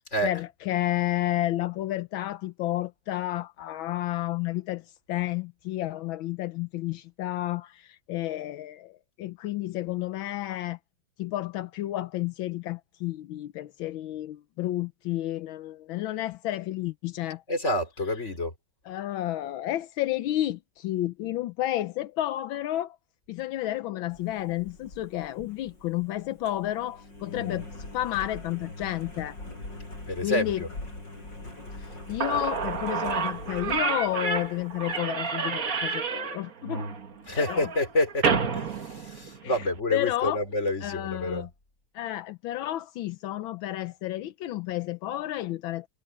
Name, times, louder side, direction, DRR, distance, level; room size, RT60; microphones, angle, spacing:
voice 1, 0.2-10.8 11.2-17.4 18.9-23.0 23.3-27.7 27.9-29.4 30.2-30.6 31.7-36.8 37.4-37.7 39.4-39.5 39.9-40.4 40.8-41.5 41.9-45.9, left 14 dB, 85° left, 1.5 m, -31 dB
voice 2, 17.5-18.5 30.1-30.7 37.3-38.3 38.5-41.5, left 1 dB, 35° left, 4.6 m, -28 dB
Engine, 24.1-35.0, left 2 dB, 65° left, 8.7 m, -43 dB
Slam / Squeak, 31.9-32.0 32.2-39.7, right 5 dB, 45° right, 1.9 m, -30 dB
omnidirectional pair, 2.1 m